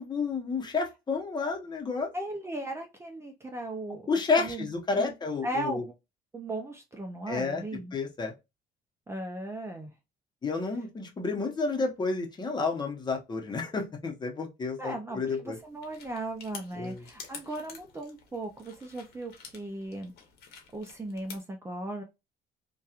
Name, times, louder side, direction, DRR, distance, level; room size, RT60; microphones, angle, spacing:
voice 1, 0.0-2.1 4.1-5.8 7.3-7.6 7.9-8.3 10.4-15.6 16.7-17.0, left 4 dB, 25° left, 0.8 m, -30 dB
voice 2, 2.1-4.0 4.4-4.7 4.9-5.1 5.4-5.9 6.3-7.9 9.1-9.9 14.8-20.1 20.5-22.0, right 1 dB, 15° right, 0.4 m, -37 dB
sound 1, 15.4-21.4, left 6 dB, 75° left, 1.0 m, -49 dB
2.9 x 2.3 x 2.4 m
cardioid pair, 110°, 17 cm